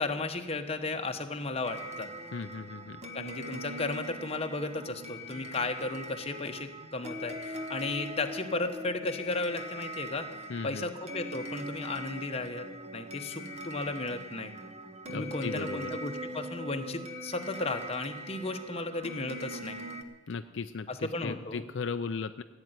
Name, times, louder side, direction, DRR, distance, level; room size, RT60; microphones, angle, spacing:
voice 1, 0.0-2.1 3.1-10.3 10.6-12.7 12.9-14.5 15.1-19.8 20.9-21.6, left 3 dB, 30° left, 6 dB, 1.1 m, -34 dB
sound 1, 1.6-20.0, equal, 30° right, 1.3 m, -41 dB
voice 2, 2.3-3.0 10.5-10.9 15.1-15.9 20.3-22.4, left 5 dB, 60° left, 9 dB, 0.5 m, -36 dB
15.5 x 9.0 x 9.5 m, 1.2 s
head